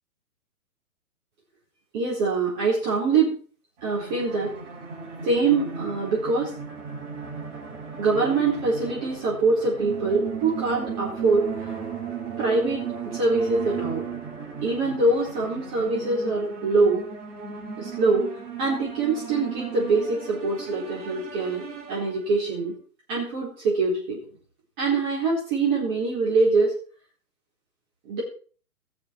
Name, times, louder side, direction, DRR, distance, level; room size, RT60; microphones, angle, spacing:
voice 1, 1.9-3.3 3.8-4.5 5.2-6.5 8.0-11.4 12.4-14.0 14.6-17.0 17.8-18.2 18.6-21.6 21.9-22.7 23.1-24.2 24.8-26.7 28.1-28.2, right 3 dB, 30° right, -6 dB, 4.2 m, -24 dB
sound 1, 3.8-22.5, right 6 dB, 45° right, 5.5 m, -36 dB
18.5 x 7.2 x 4.6 m, 0.41 s
figure-of-eight pair, 125°, 45 cm